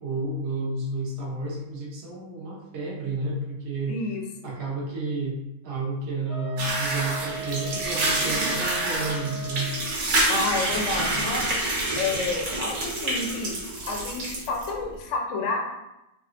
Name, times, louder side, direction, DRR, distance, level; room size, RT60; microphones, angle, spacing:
voice 1, 0.0-4.0 4.4-5.3 5.6-9.7, right 2 dB, 50° right, -5 dB, 1.1 m, -31 dB
voice 2, 3.9-4.2 10.3-13.5 13.8-15.6, left 3 dB, 65° left, 0 dB, 0.8 m, -30 dB
Wind instrument woodwind instrument, 6.3-9.9, right 5 dB, 35° left, 0.5 m, -38 dB
sound 1, 6.6-14.7, right 2 dB, 75° right, 1.4 m, -27 dB
3.6 x 2.3 x 2.5 m, 0.91 s
omnidirectional pair, 1.7 m